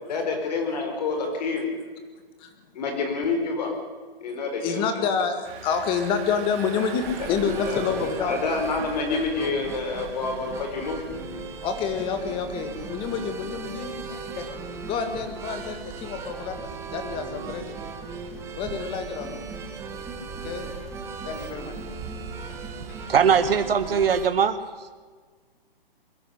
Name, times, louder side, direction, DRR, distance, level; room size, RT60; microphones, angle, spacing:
voice 1, 0.1-1.7 2.7-3.7 4.2-4.9 7.2-7.3 7.7-11.0, left 4 dB, 45° left, 4 dB, 4.8 m, -28 dB
voice 2, 4.6-8.4 11.6-14.4 14.8-17.7 18.6-19.4 20.4-20.7 21.2-21.7 23.0-23.1, left 6 dB, 15° left, 7 dB, 1.9 m, -28 dB
Engine, 5.4-11.3, right 6 dB, 25° right, 3.4 m, -42 dB
sound 1, 7.0-24.3, right 4 dB, 10° right, 1.4 m, -37 dB
voice 3, 23.1-24.6, right 7 dB, 80° right, 9 dB, 1.5 m, -20 dB
22.0 x 12.5 x 10.0 m, 1.4 s
hypercardioid pair, 165°, 29 cm